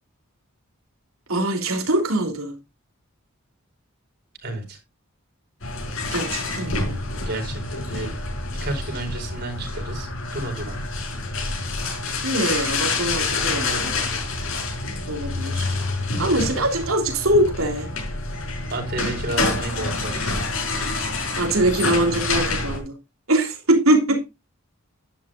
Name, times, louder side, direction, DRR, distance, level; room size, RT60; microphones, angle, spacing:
voice 1, 1.3-2.5 6.1-7.1 12.2-13.9 15.1-15.8 16.2-17.9 21.3-23.0 23.3-24.2, right 1 dB, 80° right, 3.3 m, -22 dB
voice 2, 4.4-4.8 7.2-8.1 8.6-10.8 18.7-20.4, right 2 dB, 50° right, 4.9 m, -31 dB
sound 1, 5.6-22.8, left 3 dB, 70° left, 4.9 m, -27 dB
11.5 x 11.0 x 2.5 m
head